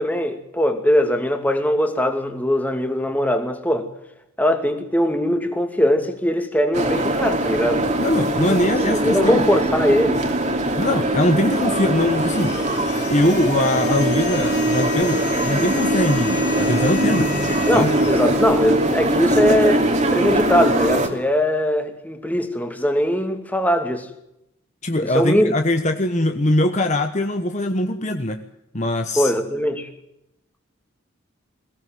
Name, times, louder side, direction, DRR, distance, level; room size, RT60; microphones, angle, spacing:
voice 1, 0.0-3.9 4.4-7.9 8.8-10.2 17.7-24.1 25.0-25.5 29.2-29.9, equal, 10° left, 5 dB, 2.6 m, -20 dB
sound 1, 6.7-21.1, right 1 dB, 35° right, 3.0 m, -21 dB
voice 2, 8.0-9.4 10.8-12.6 13.1-17.3 17.7-17.9 24.8-28.4 28.7-29.3, left 1 dB, 35° left, 6 dB, 1.2 m, -21 dB
sound 2, 11.9-19.3, left 8 dB, 50° left, 5.8 m, -35 dB
22.5 x 17.0 x 9.3 m, 0.84 s
head